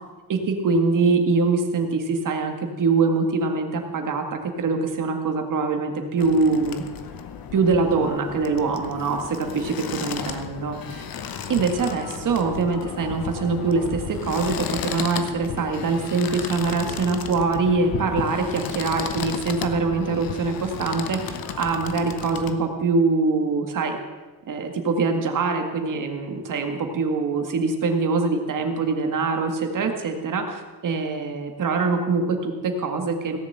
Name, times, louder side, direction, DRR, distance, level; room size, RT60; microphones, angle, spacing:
voice 1, 0.3-6.8 7.5-11.0 11.5-24.0 24.5-33.4, right 4 dB, 60° right, 5 dB, 1.9 m, -24 dB
sound 1, 6.2-22.5, left 7 dB, 70° left, 1.1 m, -33 dB
17.0 x 7.1 x 7.9 m, 1.3 s
wide cardioid pair, 180°, 36 cm